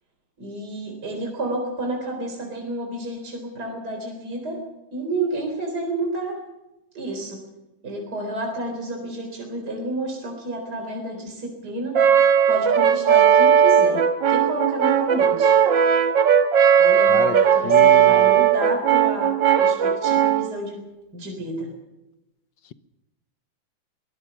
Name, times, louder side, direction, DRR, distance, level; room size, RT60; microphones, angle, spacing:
voice 1, 0.4-4.6 4.9-6.4 6.9-7.4 7.8-12.0 12.5-15.6 16.8-20.8 21.1-21.7, right 2 dB, 50° right, 2 dB, 4.6 m, -30 dB
Brass instrument, 11.9-20.5, right 8 dB, 65° right, 1.9 m, -17 dB
voice 2, 17.6-18.4, left 8 dB, 65° left, 13 dB, 1.5 m, -30 dB
23.5 x 20.0 x 6.0 m, 0.96 s
omnidirectional pair, 2.3 m